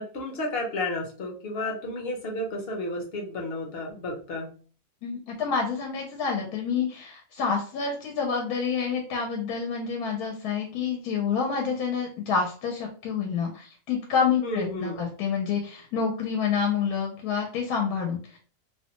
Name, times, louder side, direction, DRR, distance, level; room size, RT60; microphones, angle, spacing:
voice 1, 0.0-4.6 14.4-15.0, left 1 dB, 55° left, 0 dB, 0.7 m, -32 dB
voice 2, 5.0-18.4, left 6 dB, 90° left, 1 dB, 1.1 m, -28 dB
2.6 x 2.1 x 2.8 m, 0.40 s
omnidirectional pair, 1.6 m